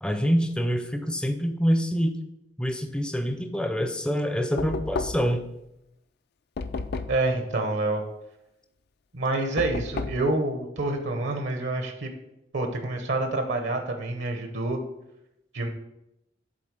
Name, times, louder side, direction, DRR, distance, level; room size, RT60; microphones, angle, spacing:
voice 1, 0.0-2.2 2.6-5.4, equal, 5° left, 6 dB, 0.5 m, -26 dB
Knock, 4.6-5.4 6.6-7.3 9.6-10.3, left 3 dB, 60° left, 0.4 m, -32 dB
voice 2, 7.1-8.0 9.1-12.1 12.5-14.8 15.5-15.7, right 2 dB, 75° right, 5 dB, 0.9 m, -27 dB
7.6 x 3.9 x 5.2 m, 0.86 s
head